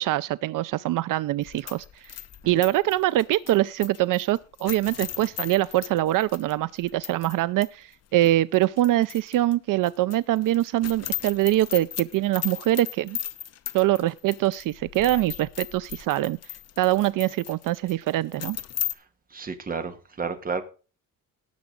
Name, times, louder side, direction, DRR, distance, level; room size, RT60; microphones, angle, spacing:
voice 1, 0.0-2.2 2.5-13.2 13.7-16.4 16.8-18.6, right 15 dB, 75° right, 0.5 m, -24 dB
sound 1, 1.4-7.4 7.6-7.7 8.2-9.5 9.8-18.9, left 11 dB, 50° left, 0.9 m, -37 dB
voice 2, 19.3-20.6, right 5 dB, 25° right, 1.6 m, -31 dB
18.0 x 7.0 x 3.8 m
cardioid pair, 160°, 32 cm